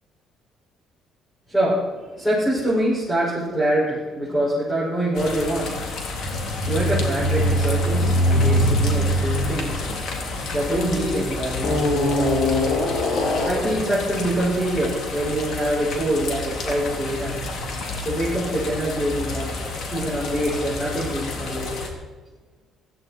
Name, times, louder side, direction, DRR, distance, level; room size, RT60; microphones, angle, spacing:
voice 1, 1.5-5.8 6.7-9.8 10.5-12.4 13.4-17.4 18.0-19.6 19.9-21.8, right 1 dB, 15° left, -7 dB, 6.5 m, -25 dB
sound 1, 5.1-21.9, left 3 dB, 65° left, 3.1 m, -31 dB
sound 2, 6.1-11.0 11.6-13.8, equal, 85° left, 3.2 m, -22 dB
16.5 x 15.0 x 4.7 m, 1.3 s
cardioid pair, 110°, 0 cm